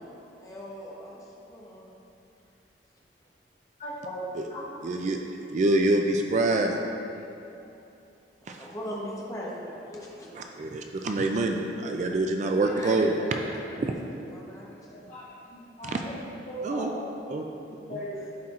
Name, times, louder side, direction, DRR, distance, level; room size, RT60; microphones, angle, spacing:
voice 1, 0.0-1.9 8.6-10.3 10.6-10.7 12.7-14.9, equal, 20° left, -5 dB, 0.9 m, -40 dB
voice 2, 3.8-4.2 4.5-5.0 6.4-6.6 7.1-7.2 7.6-7.7 8.8-8.9 9.9-10.0 10.2-10.5 12.0-12.1 12.6-12.7 13.4-13.5 14.8-16.2 16.4-17.1 17.9-18.3, equal, 40° left, -7 dB, 1.5 m, -39 dB
voice 3, 4.8-5.2 5.5-6.7 8.5-8.7 10.4-13.1 13.8-13.9 15.9-16.0 16.6-16.9 17.3-17.4, right 2 dB, 40° right, 3 dB, 0.3 m, -25 dB
11.5 x 4.4 x 2.4 m, 2.7 s
head